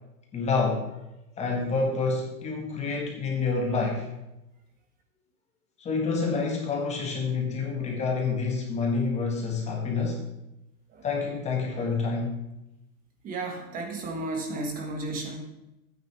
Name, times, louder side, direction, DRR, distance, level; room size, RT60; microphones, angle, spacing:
voice 1, 0.3-1.0 1.4-4.1 5.8-10.2 11.0-12.4, left 4 dB, 15° left, 0 dB, 1.6 m, -28 dB
voice 2, 13.2-15.4, right 2 dB, 20° right, 3 dB, 1.6 m, -33 dB
13.0 x 9.2 x 3.4 m, 0.91 s
supercardioid pair, 155°, 44 cm